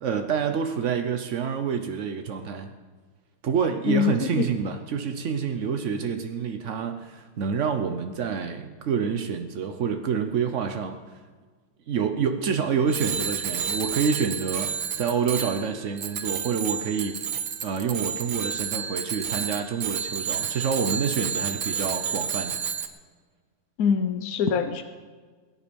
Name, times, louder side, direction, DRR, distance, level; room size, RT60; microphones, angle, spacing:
voice 1, 0.0-2.7 3.4-11.2 11.9-17.2 17.6-22.6, right 6 dB, 75° right, 6 dB, 0.6 m, -27 dB
voice 2, 3.9-4.5 23.8-24.8, left 7 dB, 65° left, 8 dB, 0.9 m, -24 dB
Bicycle bell, 12.9-22.9, right 7 dB, 55° right, 1.1 m, -31 dB
22.0 x 10.0 x 5.3 m, 1.5 s
omnidirectional pair, 2.4 m